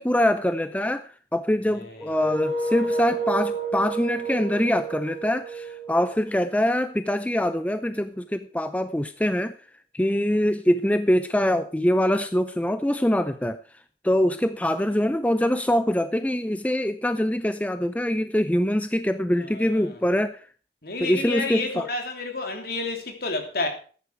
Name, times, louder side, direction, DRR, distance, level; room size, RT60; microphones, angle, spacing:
voice 1, 0.0-9.5 9.9-13.6 14.0-20.5 21.0-21.9, left 1 dB, 10° left, 0.5 m, -24 dB
voice 2, 1.7-2.3 19.4-20.0 20.8-23.7, left 3 dB, 55° left, 3.2 m, -31 dB
sound 1, 2.1-6.9, right 3 dB, 35° right, 4.5 m, -30 dB
14.5 x 10.5 x 4.6 m
head